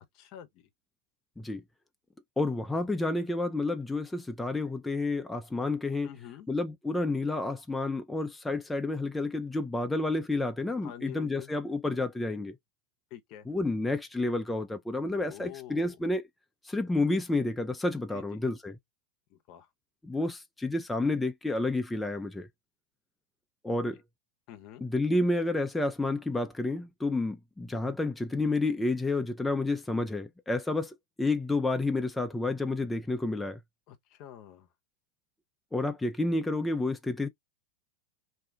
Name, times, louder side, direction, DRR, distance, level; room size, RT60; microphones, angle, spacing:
voice 1, 0.1-0.7 6.0-6.5 10.8-11.5 13.1-13.5 15.2-16.0 18.1-18.4 19.3-19.7 23.7-23.8 24.5-24.8 33.9-34.7, left 12 dB, 50° left, 0.7 m, -47 dB
voice 2, 2.4-6.1 6.5-12.5 13.5-16.2 16.6-18.7 20.0-22.5 23.6-24.0 24.8-33.6 35.7-37.3, left 2 dB, 10° left, 0.4 m, -30 dB
2.6 x 2.4 x 3.4 m
hypercardioid pair, 105°, 0 cm